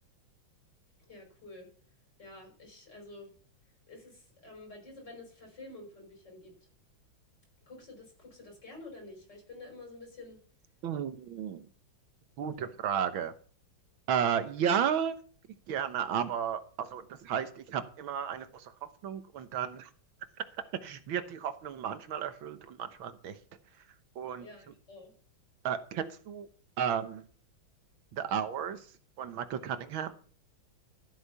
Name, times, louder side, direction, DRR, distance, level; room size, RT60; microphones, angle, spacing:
voice 1, 1.0-1.7 2.2-3.3 3.9-6.5 7.7-10.4 24.4-25.1, left 2 dB, 55° left, 2 dB, 6.0 m, -49 dB
voice 2, 10.8-11.7 12.4-13.3 14.1-15.2 15.7-19.9 20.8-23.4 24.2-24.5 25.6-26.5 26.8-27.3 28.1-28.9 29.2-30.2, right 8 dB, 80° right, 11 dB, 1.9 m, -33 dB
13.5 x 8.2 x 5.6 m, 0.42 s
omnidirectional pair, 2.2 m